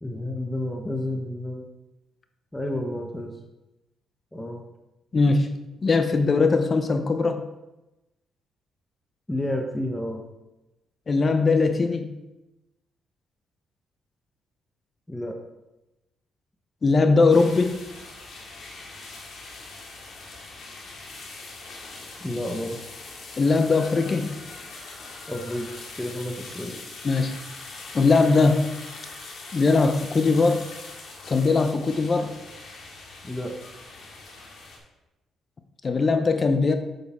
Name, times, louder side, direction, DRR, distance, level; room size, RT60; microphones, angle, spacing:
voice 1, 0.0-1.7 2.5-3.3 4.3-4.6 9.3-10.2 15.1-15.4 22.2-22.8 25.3-25.7 26.0-26.8 33.2-33.6, left 1 dB, 10° left, 3 dB, 1.1 m, -30 dB
voice 2, 5.1-5.5 5.8-7.4 11.1-12.2 16.8-17.8 23.4-24.4 27.0-27.3 27.9-28.7 29.5-30.6 31.3-32.3 35.8-36.8, left 3 dB, 35° left, 7 dB, 0.7 m, -20 dB
sound 1, 17.3-34.8, left 3 dB, 70° left, 2.3 m, -42 dB
8.3 x 6.7 x 4.4 m, 1.0 s
cardioid pair, 90°, 0 cm